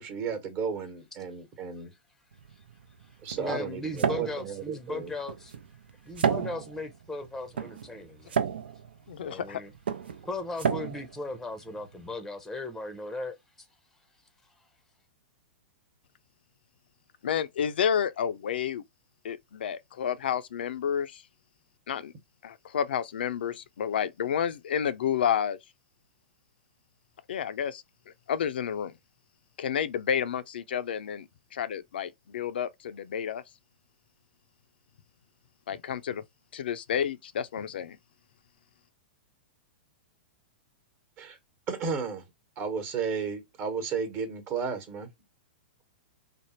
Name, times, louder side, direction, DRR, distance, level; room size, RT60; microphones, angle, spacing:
voice 1, 0.0-1.9 3.2-5.1 41.2-41.4 41.7-42.3 42.6-45.1, right 6 dB, 35° right, 1.1 m, -33 dB
sound 1, 2.3-12.1, right 7 dB, 80° right, 0.6 m, -33 dB
voice 2, 3.4-5.6 6.0-8.4 9.2-9.7 10.2-13.4 14.4-14.5, left 2 dB, 5° left, 0.6 m, -37 dB
voice 3, 9.1-9.6 17.2-18.8 19.2-21.2 21.9-22.1 22.4-25.6 27.3-27.8 28.3-28.9 29.6-33.4 35.7-36.2 36.5-38.0, left 8 dB, 75° left, 0.5 m, -30 dB
3.4 x 2.0 x 4.2 m
hypercardioid pair, 115°, 6 cm